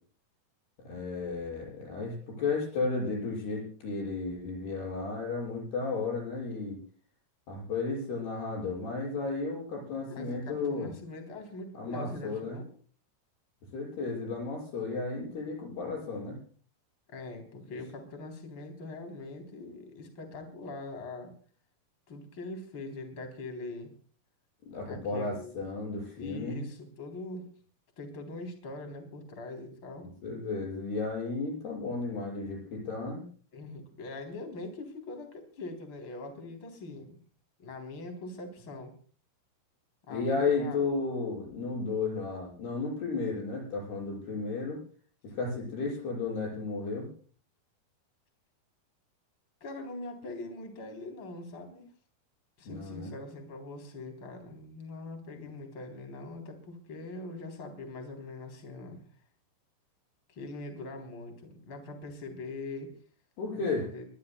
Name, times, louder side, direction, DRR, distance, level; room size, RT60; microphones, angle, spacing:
voice 1, 0.8-6.8 7.5-10.9 11.8-12.6 13.7-16.4 17.7-17.8 24.7-26.6 30.0-33.2 40.1-44.8 45.2-47.1 52.7-53.1 63.4-63.9, left 4 dB, 70° left, -2 dB, 8.4 m, -33 dB
voice 2, 10.1-12.7 17.1-21.3 22.1-23.9 24.9-25.6 26.2-27.5 28.0-30.1 33.5-37.2 37.6-38.9 40.1-40.8 45.4-45.6 49.6-51.9 52.6-59.0 60.3-62.9 63.5-64.1, left 2 dB, 30° left, 4 dB, 3.8 m, -42 dB
23.0 x 21.5 x 2.3 m, 0.43 s
omnidirectional pair, 4.9 m